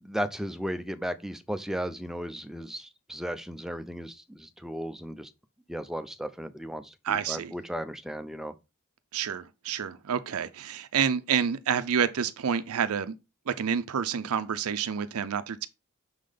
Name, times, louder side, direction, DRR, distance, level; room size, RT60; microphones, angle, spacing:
voice 1, 0.0-5.3 5.7-8.5, equal, ahead, 0.4 m, -35 dB
voice 2, 7.0-7.5 9.1-13.1 13.5-15.7, right 7 dB, 70° right, 0.5 m, -28 dB
6.2 x 3.8 x 5.0 m
head